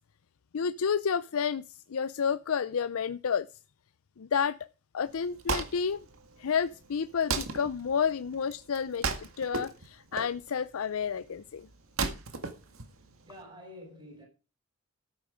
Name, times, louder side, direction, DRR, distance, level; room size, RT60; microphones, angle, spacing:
voice 1, 0.5-3.5 4.2-4.6 4.9-6.0 6.4-11.7, left 6 dB, 80° left, 0.5 m, -30 dB
Wood, 5.1-13.4, right 4 dB, 80° right, 1.8 m, -36 dB
voice 2, 13.3-14.3, left 1 dB, 20° right, 4.9 m, -48 dB
13.0 x 8.9 x 5.1 m
head